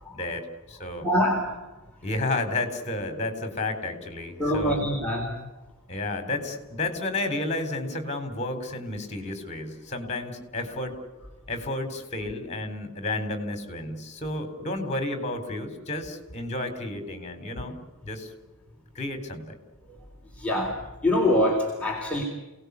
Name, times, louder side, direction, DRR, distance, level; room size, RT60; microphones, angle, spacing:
voice 1, 0.1-1.1 2.0-4.8 5.9-11.0 11.5-17.8 18.0-18.3 18.9-19.6, left 2 dB, 30° left, 8 dB, 4.1 m, -31 dB
voice 2, 1.0-1.5 4.4-5.3 20.4-20.8 21.0-22.2, left 1 dB, 5° left, -3 dB, 3.7 m, -24 dB
28.5 x 19.0 x 8.3 m, 1.2 s
head